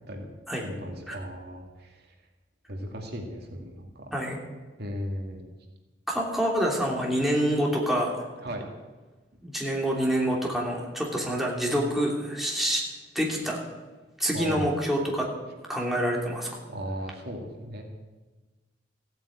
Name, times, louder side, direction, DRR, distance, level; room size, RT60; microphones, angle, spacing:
voice 1, 0.6-2.1 2.7-4.1 4.8-5.4 8.4-8.6 14.3-14.7 16.7-17.8, equal, 60° right, 2 dB, 2.3 m, -36 dB
voice 2, 6.1-8.3 9.4-12.8 13.1-13.6 14.2-15.3 15.7-16.5, equal, ahead, -2 dB, 2.9 m, -27 dB
15.0 x 9.0 x 8.7 m, 1.2 s
head